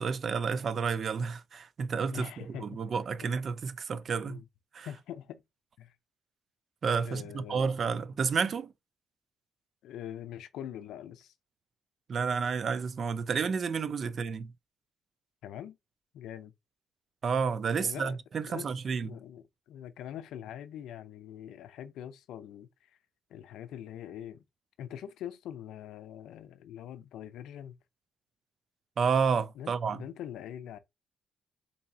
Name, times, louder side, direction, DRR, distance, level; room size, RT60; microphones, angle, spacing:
voice 1, 0.0-4.4 4.7-4.9 6.8-8.7 12.1-14.5 17.2-19.1 29.0-30.0, right 5 dB, 50° right, 0.4 m, -30 dB
voice 2, 2.1-2.8 4.3-4.5 4.8-5.4 5.8-5.9 7.0-7.7 9.8-11.3 15.4-15.8 16.1-16.5 17.8-18.2 18.5-18.7 19.0-22.9 23.3-24.5 24.8-27.8 29.6-30.8, left 10 dB, 85° left, 0.5 m, -43 dB
3.9 x 2.7 x 2.7 m
cardioid pair, 90°, 0 cm